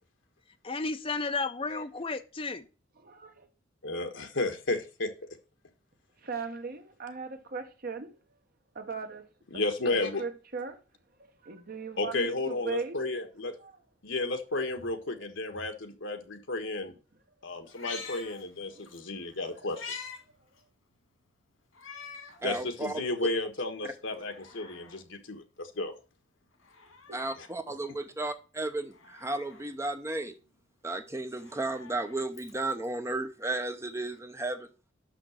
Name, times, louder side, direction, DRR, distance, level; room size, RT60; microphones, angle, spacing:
voice 1, 0.6-2.7, left 3 dB, 30° left, 0.7 m, -33 dB
voice 2, 3.0-3.5 6.2-8.2 8.7-9.3 9.5-9.6 9.9-10.8 11.2-13.0 13.6-13.8 16.9-17.0 18.7-18.9 19.1-19.3 27.1-27.2, right 4 dB, 50° right, 1.2 m, -39 dB
voice 3, 3.8-5.1 9.5-10.2 12.0-13.5 14.0-16.9 17.4-19.9 22.4-25.9, left 2 dB, 65° left, 1.5 m, -33 dB
Meow, 17.7-19.0 19.3-20.2 20.6-20.7 21.7-22.4 22.9-23.0 24.0-25.0 26.5-27.5 28.9-29.7 31.2-32.9 34.1-34.2, left 5 dB, 85° left, 2.5 m, -46 dB
voice 4, 22.4-23.1 23.8-23.9 27.1-30.3 30.8-34.7, right 2 dB, 15° right, 0.7 m, -34 dB
6.0 x 5.9 x 6.4 m
head